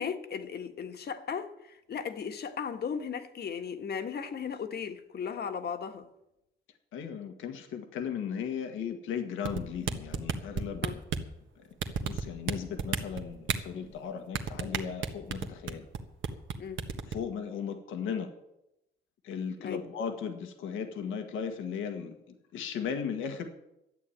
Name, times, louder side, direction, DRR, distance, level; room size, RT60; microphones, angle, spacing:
voice 1, 0.0-6.1 10.8-11.0 16.6-16.9 19.6-19.8, left 6 dB, 55° left, 1.5 m, -36 dB
voice 2, 6.9-11.0 11.6-11.7 12.0-15.9 17.1-18.3 19.2-23.5, left 7 dB, 85° left, 1.6 m, -36 dB
sound 1, 9.4-11.3 11.8-12.5 12.8-13.6 14.3-16.0 16.2-16.5 16.8-17.1, right 7 dB, 75° right, 1.4 m, -30 dB
12.5 x 8.7 x 8.7 m
cardioid pair, 90°, 20 cm